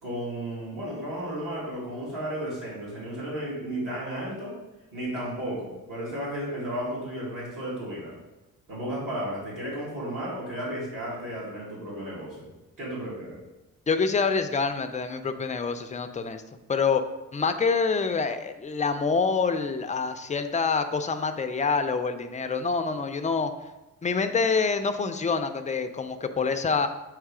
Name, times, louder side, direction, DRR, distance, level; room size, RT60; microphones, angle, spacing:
voice 1, 0.0-4.5 4.9-8.2 8.7-12.5 12.8-13.4, right 1 dB, 60° right, -8 dB, 2.3 m, -33 dB
voice 2, 13.9-16.4 16.7-17.0 17.3-23.5 24.0-26.9, left 5 dB, 20° left, 7 dB, 0.3 m, -26 dB
7.4 x 3.1 x 4.8 m, 1.1 s
wide cardioid pair, 145°, 35 cm